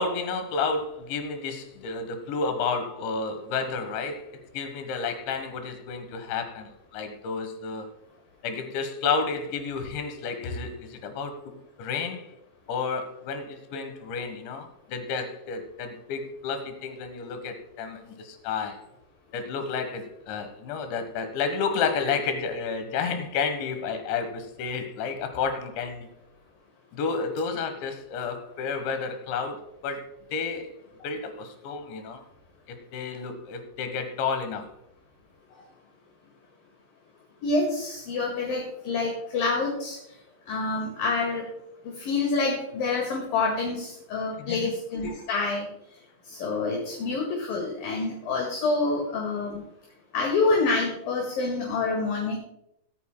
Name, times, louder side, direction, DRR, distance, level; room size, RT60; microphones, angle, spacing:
voice 1, 0.0-4.3 4.5-7.9 8.4-12.3 12.7-18.8 19.3-26.1 26.9-30.7 31.0-32.2 32.7-34.7 44.4-44.7, left 5 dB, 75° left, 7 dB, 3.5 m, -31 dB
voice 2, 37.4-40.0 40.5-41.5 42.0-45.7 46.3-49.5 50.1-52.4, left 3 dB, 60° left, -1 dB, 3.1 m, -27 dB
22.5 x 9.1 x 2.2 m, 0.80 s
omnidirectional pair, 5.4 m